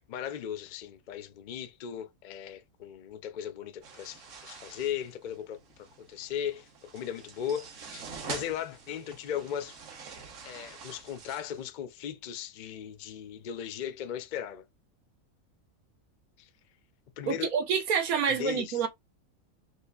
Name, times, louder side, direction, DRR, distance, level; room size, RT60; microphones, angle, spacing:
voice 1, 0.0-5.6 6.0-9.8 10.4-14.6 16.4-16.5 17.2-17.5 18.3-18.9, left 9 dB, 70° left, 0.4 m, -37 dB
sound 1, 3.8-11.7, right 5 dB, 65° right, 1.2 m, -46 dB
voice 2, 17.3-18.9, right 6 dB, 90° right, 1.3 m, -27 dB
4.8 x 2.5 x 2.3 m
omnidirectional pair, 1.5 m